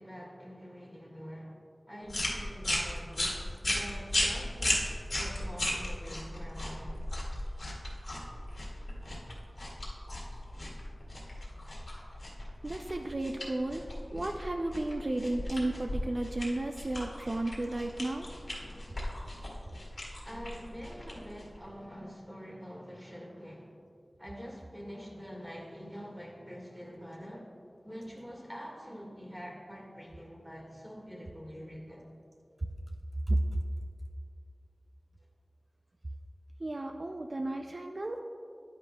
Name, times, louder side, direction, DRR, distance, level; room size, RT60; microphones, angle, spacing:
voice 1, 0.0-1.6 1.9-7.0 9.8-9.9 20.2-23.8 24.2-27.5 27.8-32.1, equal, ahead, -2 dB, 1.7 m, -45 dB
sound 1, 2.1-21.6, left 1 dB, 65° left, 1.8 m, -36 dB
voice 2, 12.6-13.8 14.1-18.3 18.9-19.0 33.3-33.4 36.6-38.2, right 2 dB, 50° right, 3 dB, 0.4 m, -33 dB
10.0 x 9.4 x 2.2 m, 2.4 s
wide cardioid pair, 65°, 0 cm